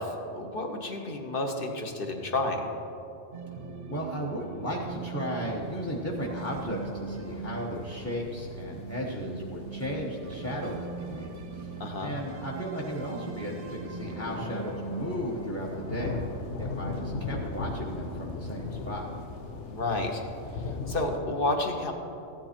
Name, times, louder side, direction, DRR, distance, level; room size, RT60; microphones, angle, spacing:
voice 1, 0.0-2.6 11.8-12.1 19.7-20.2 20.9-21.9, left 2 dB, 50° left, 3 dB, 1.3 m, -30 dB
sound 1, 3.3-17.3, right 5 dB, 55° right, 0.8 m, -41 dB
voice 2, 3.9-16.2 16.6-19.1, equal, 15° left, -3 dB, 1.0 m, -35 dB
sound 2, 4.8-21.2, left 4 dB, 70° left, 1.1 m, -40 dB
14.5 x 10.0 x 4.4 m, 2.8 s
omnidirectional pair, 1.3 m